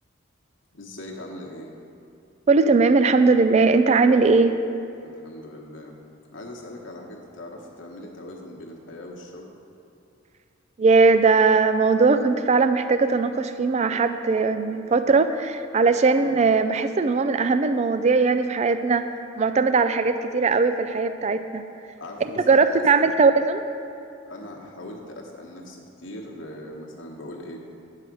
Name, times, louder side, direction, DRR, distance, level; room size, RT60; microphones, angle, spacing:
voice 1, 0.7-1.7 5.0-5.9 6.3-9.5 16.1-16.3 22.0-23.1 24.3-27.6, left 1 dB, 65° left, -1 dB, 1.2 m, -40 dB
voice 2, 2.5-4.6 10.8-19.0 19.4-21.6 22.5-23.6, right 4 dB, 35° right, 10 dB, 0.3 m, -19 dB
10.0 x 4.8 x 6.1 m, 2.6 s
head